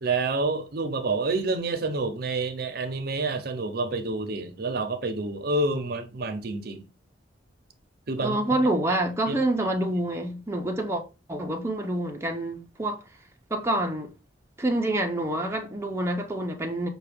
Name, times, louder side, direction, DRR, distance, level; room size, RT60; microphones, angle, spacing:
voice 1, 0.0-6.9 8.1-8.4 9.3-9.4, right 3 dB, 60° right, 0.6 m, -28 dB
voice 2, 8.2-11.0 11.3-13.0 13.5-14.1 14.6-16.9, right 1 dB, 15° right, 0.5 m, -27 dB
5.6 x 2.3 x 3.4 m
head